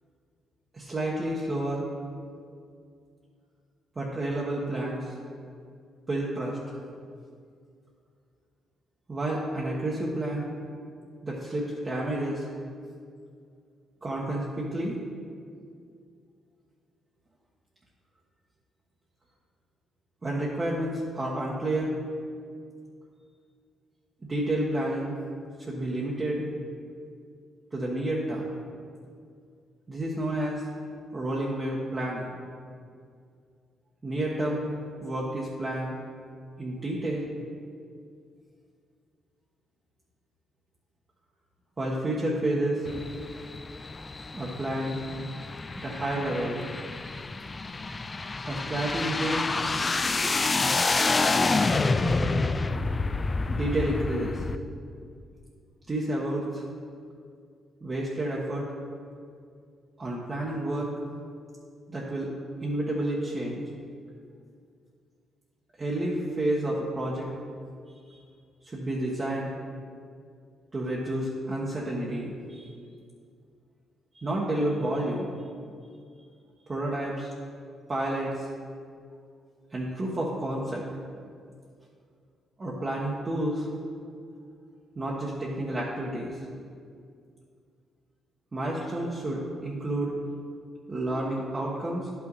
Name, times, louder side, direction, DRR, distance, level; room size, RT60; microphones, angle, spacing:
voice 1, 0.7-1.9 4.0-5.1 6.1-6.6 9.1-10.5 11.2-12.5 14.0-15.0 20.2-22.0 24.2-25.1 25.6-26.4 27.7-28.5 29.9-30.6 31.1-32.3 34.0-34.7 35.0-36.0 36.6-37.3 41.8-42.9 44.3-45.0 45.8-46.6 48.5-49.5 53.5-54.5 55.9-56.6 57.8-58.7 60.0-60.9 61.9-62.3 62.6-63.6 65.8-67.3 68.1-68.2 68.6-69.5 70.7-72.7 74.1-75.3 76.7-77.3 77.9-78.5 79.7-80.9 82.6-83.7 85.0-86.4 88.5-90.1 90.9-92.1, right 1 dB, 30° right, -5 dB, 1.2 m, -30 dB
sound 1, 42.8-54.6, left 3 dB, 30° left, 0.4 m, -28 dB
10.5 x 5.8 x 4.1 m, 2.2 s
cardioid pair, 90°, 0 cm